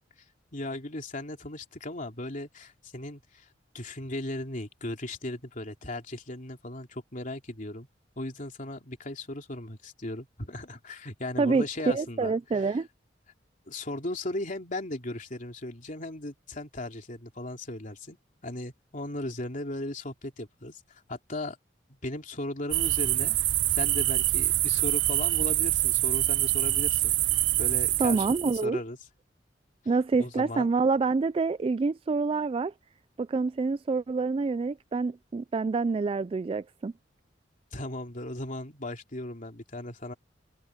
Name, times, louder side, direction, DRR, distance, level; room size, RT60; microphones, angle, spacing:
voice 1, 0.5-3.5 3.7-7.9 8.2-12.7 13.7-18.2 18.4-21.6 22.0-23.4 23.7-27.1 27.6-29.0 30.2-30.7 37.7-40.1, left 1 dB, 45° left, 3.1 m, -37 dB
voice 2, 11.4-12.9 28.0-28.8 29.9-32.7 33.2-36.9, right 4 dB, 30° right, 0.3 m, -27 dB
sound 1, 22.7-28.6, right 16 dB, 75° right, 0.6 m, -25 dB
head